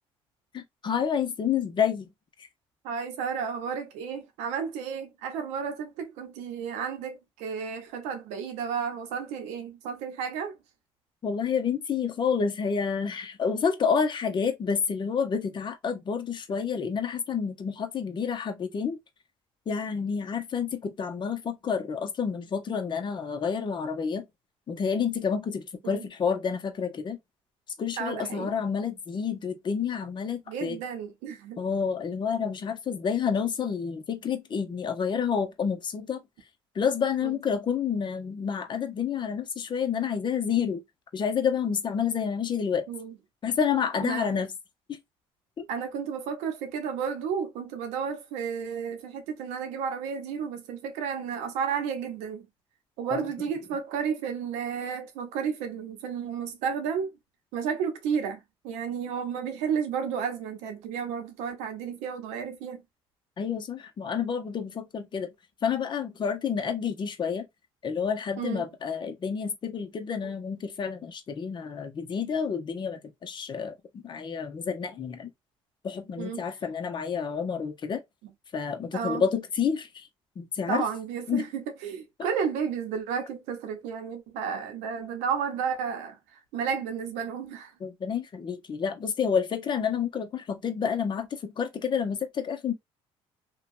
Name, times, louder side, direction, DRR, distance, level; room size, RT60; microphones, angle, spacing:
voice 1, 0.5-2.1 11.2-19.0 19.7-24.2 24.7-27.2 27.8-30.8 31.6-36.2 36.7-40.8 41.1-42.9 43.4-44.5 44.9-45.0 45.6-45.7 53.1-53.3 63.4-65.3 65.6-67.5 67.8-75.3 75.8-78.0 78.5-80.1 80.4-80.8 81.3-81.5 82.2-82.3 87.8-92.7, left 6 dB, 45° left, 0.8 m, -29 dB
voice 2, 2.8-10.5 25.8-26.0 28.0-28.5 30.5-31.6 37.2-37.4 42.9-43.1 44.0-44.4 45.7-52.5 53.0-57.1 57.5-62.8 68.4-68.6 70.2-70.3 76.2-76.4 78.9-79.2 80.7-87.7, right 7 dB, 90° right, 0.8 m, -32 dB
2.8 x 2.2 x 2.5 m
supercardioid pair, 80°, 11 cm